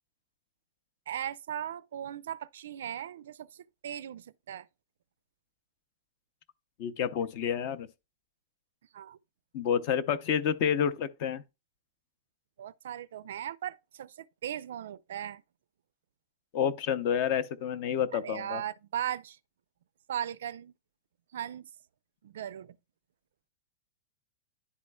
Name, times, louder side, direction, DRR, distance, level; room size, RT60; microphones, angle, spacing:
voice 1, 1.1-4.7 8.9-9.2 12.6-15.4 18.1-19.4 20.1-20.7 21.3-21.7 22.2-22.8, right 10 dB, 70° right, 0.3 m, -38 dB
voice 2, 6.8-7.9 9.5-11.4 16.5-18.6, left 8 dB, 35° left, 0.5 m, -29 dB
11.0 x 4.2 x 2.2 m
supercardioid pair, 170°, 0 cm